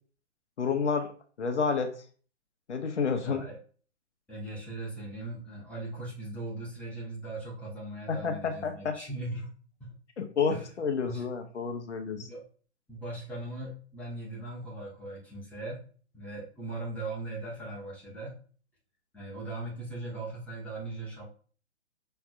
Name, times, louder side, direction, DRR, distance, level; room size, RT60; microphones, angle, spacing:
voice 1, 0.6-1.1 1.4-1.9 2.7-3.4 8.1-9.0 10.2-12.3, left 5 dB, 70° left, 6 dB, 0.8 m, -30 dB
voice 2, 3.2-3.6 4.3-9.5 9.8-9.9 10.5-10.6 11.0-11.2 12.2-12.4 12.9-15.8 16.1-18.4 19.1-21.2, right 2 dB, 5° left, -6 dB, 1.3 m, -39 dB
5.7 x 3.3 x 2.4 m, 0.42 s
figure-of-eight pair, 125°, 35 cm